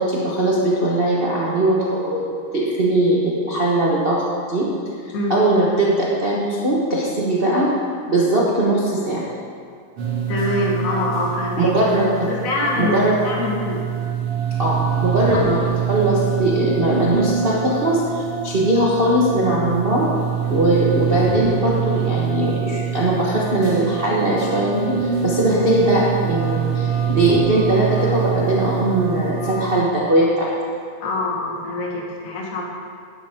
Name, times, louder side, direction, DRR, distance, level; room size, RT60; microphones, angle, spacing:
voice 1, 0.0-4.2 4.5-4.7 5.0-7.7 8.1-9.2 11.6-12.3 12.7-13.1 14.6-15.6 15.9-20.1 20.5-30.5, right 1 dB, 85° right, -6 dB, 0.5 m, -20 dB
sound 1, 10.0-29.8, right 8 dB, 50° right, 3.0 m, -25 dB
voice 2, 10.3-11.7 12.3-13.8 15.3-15.4 20.4-20.6 31.0-32.6, left 2 dB, 35° left, -2 dB, 1.5 m, -24 dB
11.5 x 11.0 x 3.7 m, 2.2 s
omnidirectional pair, 3.4 m